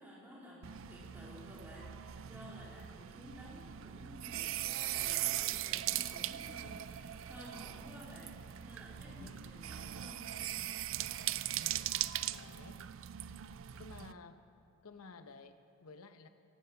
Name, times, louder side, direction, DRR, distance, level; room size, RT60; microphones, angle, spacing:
voice 1, 0.0-10.3, equal, 10° right, -6 dB, 3.8 m, -53 dB
sound 1, 0.6-14.1, right 13 dB, 65° right, 0.4 m, -40 dB
voice 2, 11.5-12.0 12.3-12.8 13.8-14.5 14.8-16.3, left 3 dB, 85° left, 9 dB, 0.8 m, -53 dB
15.5 x 15.0 x 6.0 m, 2.4 s
head